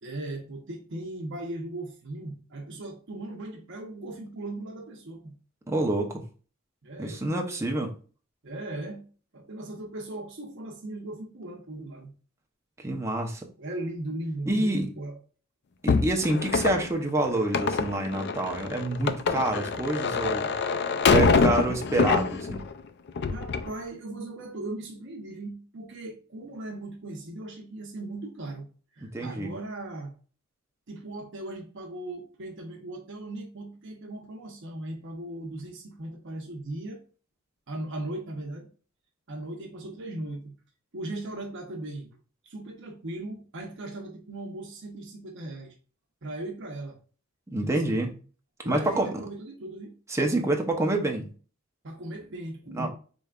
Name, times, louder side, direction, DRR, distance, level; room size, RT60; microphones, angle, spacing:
voice 1, 0.0-5.3 6.8-7.6 8.4-9.1 9.3-12.1 13.6-15.2 21.4-21.6 23.3-28.7 28.9-30.1 30.9-37.0 37.7-38.7 39.3-40.5 40.9-42.1 42.4-45.7 46.2-47.0 47.6-47.8 48.6-49.9 51.8-52.9, right 2 dB, 60° right, 0.9 m, -38 dB
voice 2, 5.7-6.2 7.0-7.9 12.8-13.5 14.5-14.9 15.8-20.5 21.1-22.6 29.1-29.5 47.5-48.1 48.6-49.1 50.1-51.3 52.7-52.9, right 1 dB, 15° right, 0.7 m, -27 dB
sound 1, 15.9-22.7 23.1-23.7, left 5 dB, 55° left, 0.4 m, -25 dB
5.1 x 3.3 x 2.4 m
head